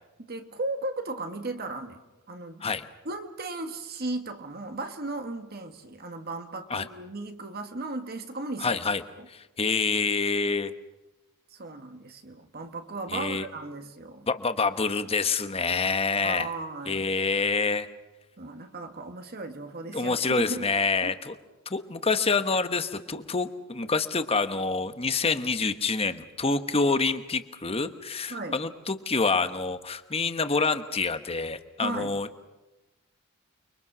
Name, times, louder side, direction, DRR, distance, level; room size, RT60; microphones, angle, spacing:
voice 1, 0.2-2.0 2.3-2.7 3.0-8.8 9.2-9.3 11.5-14.3 16.2-17.1 18.4-20.7 21.0-21.1 28.3-28.6 31.8-32.1, right 2 dB, 45° right, 6 dB, 1.6 m, -36 dB
voice 2, 8.6-9.0 9.3-10.7 13.1-13.4 14.3-16.5 16.9-17.9 19.9-21.3 21.7-32.4, left 4 dB, 25° left, 10 dB, 1.2 m, -27 dB
29.5 x 23.0 x 6.2 m, 1.1 s
head